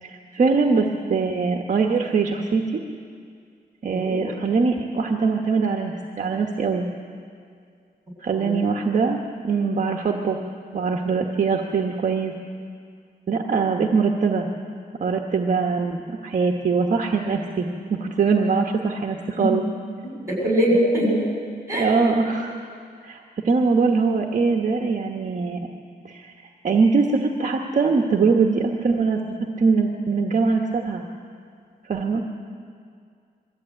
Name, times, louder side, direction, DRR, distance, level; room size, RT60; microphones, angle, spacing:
voice 1, 0.0-2.8 3.8-6.8 8.2-9.2 9.4-10.4 10.7-12.3 13.3-14.5 15.0-16.0 16.2-19.6 21.7-22.5 23.0-25.6 26.0-26.3 26.6-29.2 29.6-31.0 31.9-32.2, right 4 dB, 50° right, 2 dB, 1.3 m, -22 dB
voice 2, 20.0-21.1 21.7-21.9, equal, 15° right, -3 dB, 7.9 m, -22 dB
22.5 x 14.5 x 9.0 m, 2.2 s
wide cardioid pair, 145°, 17 cm